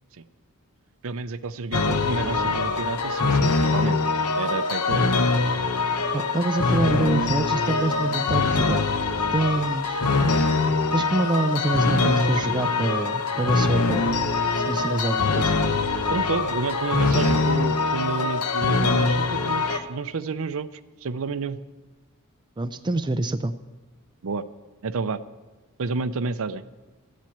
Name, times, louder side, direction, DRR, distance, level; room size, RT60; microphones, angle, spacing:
voice 1, 1.0-4.0 4.4-5.1 16.1-21.6 24.2-24.4 24.8-25.2 25.8-26.6, right 4 dB, 65° right, 13 dB, 0.6 m, -30 dB
sound 1, 1.7-19.8, left 3 dB, 75° left, 1.0 m, -23 dB
voice 2, 6.1-8.8 9.3-10.0 10.9-14.1 14.6-15.5 22.6-23.5, right 2 dB, 20° right, 10 dB, 0.4 m, -26 dB
14.0 x 7.5 x 8.6 m, 1.2 s
head